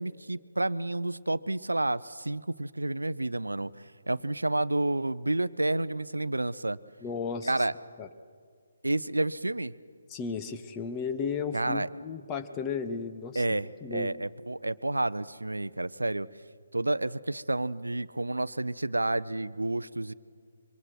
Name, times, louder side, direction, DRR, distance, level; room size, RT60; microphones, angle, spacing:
voice 1, 0.0-3.7 4.1-6.8 7.4-7.7 8.8-9.7 11.5-11.9 13.3-16.3 16.7-20.1, right 2 dB, 75° right, 17 dB, 0.6 m, -30 dB
voice 2, 7.0-7.5 8.0-8.1 10.1-14.1, left 5 dB, 15° left, 8 dB, 1.0 m, -34 dB
25.5 x 24.0 x 6.1 m, 2.1 s
figure-of-eight pair, 140°, 0 cm